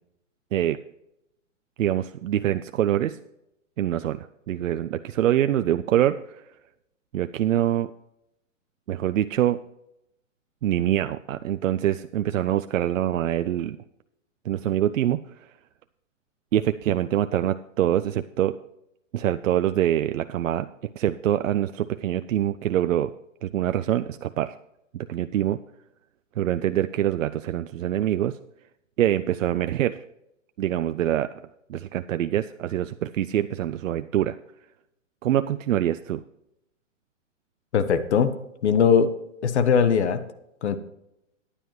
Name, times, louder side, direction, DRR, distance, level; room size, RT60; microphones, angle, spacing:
voice 1, 1.8-3.2 3.8-6.4 7.1-7.9 8.9-9.6 10.6-13.8 14.5-15.5 16.5-18.6 19.1-23.1 23.4-24.6 24.9-25.6 26.4-28.4 29.0-30.0 30.6-31.3 31.7-34.4 35.2-36.2, right 11 dB, 80° right, 11 dB, 0.5 m, -25 dB
voice 2, 37.7-38.3 38.6-39.1 39.4-40.2 40.6-40.8, left 7 dB, 60° left, 11 dB, 1.1 m, -20 dB
14.5 x 10.0 x 3.1 m, 0.84 s
hypercardioid pair, 145°, 38 cm